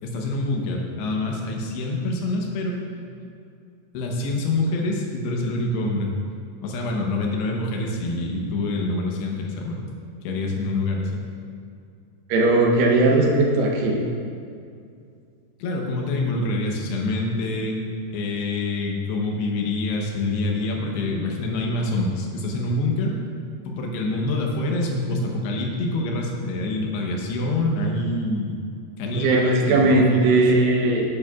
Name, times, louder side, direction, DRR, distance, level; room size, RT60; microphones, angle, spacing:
voice 1, 0.0-2.8 3.9-6.1 6.6-9.8 10.2-11.3 15.6-17.8 18.1-23.2 23.6-28.6 29.0-30.5, left 2 dB, 90° left, 0 dB, 3.2 m, -26 dB
voice 2, 12.3-14.0 29.1-31.1, right 2 dB, 70° right, -1 dB, 2.4 m, -18 dB
10.0 x 9.4 x 2.4 m, 2.4 s
omnidirectional pair, 4.7 m